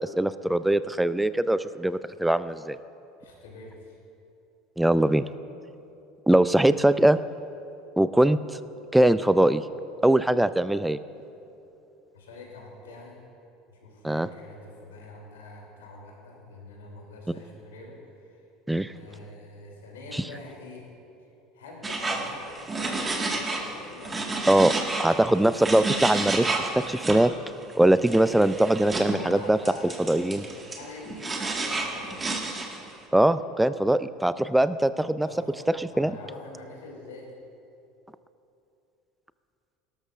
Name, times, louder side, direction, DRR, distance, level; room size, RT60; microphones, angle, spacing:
voice 1, 0.0-2.8 4.8-5.2 6.3-7.2 8.0-8.4 8.9-9.6 10.0-11.0 14.0-14.3 18.7-18.9 20.1-20.2 24.5-24.7 25.0-27.3 27.8-29.6 30.1-30.4 33.1-35.3 35.8-36.1, right 1 dB, 5° right, 14 dB, 0.4 m, -21 dB
voice 2, 3.2-4.0 12.1-13.2 13.7-18.4 18.9-20.9 21.2-21.3 21.5-24.3 29.1-32.4 35.2-37.3, left 2 dB, 80° left, -2 dB, 3.0 m, -45 dB
sound 1, 21.8-23.7 24.0-27.2 28.0-29.2 29.7-32.9, right 3 dB, 25° right, 1.7 m, -30 dB
18.0 x 12.5 x 2.5 m, 2.8 s
hypercardioid pair, 75°, 0 cm